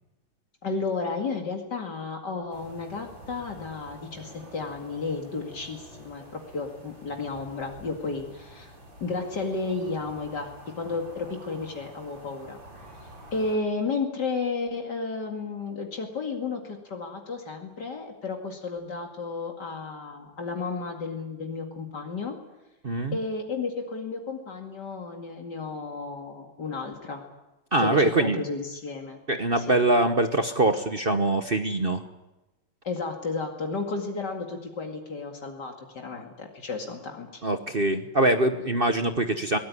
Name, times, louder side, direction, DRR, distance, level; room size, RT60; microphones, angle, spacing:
voice 1, 0.6-8.7 9.0-12.6 13.3-22.4 23.1-27.2 27.8-29.2 29.6-29.8 32.8-37.4, left 4 dB, 60° left, 3 dB, 2.8 m, -33 dB
sound 1, 2.5-13.6, right 1 dB, 85° right, 5.8 m, -48 dB
voice 2, 22.8-23.2 27.7-28.4 29.3-32.0 37.4-39.6, right 2 dB, 35° right, 8 dB, 1.1 m, -23 dB
22.5 x 19.0 x 9.8 m, 1.0 s
omnidirectional pair, 2.1 m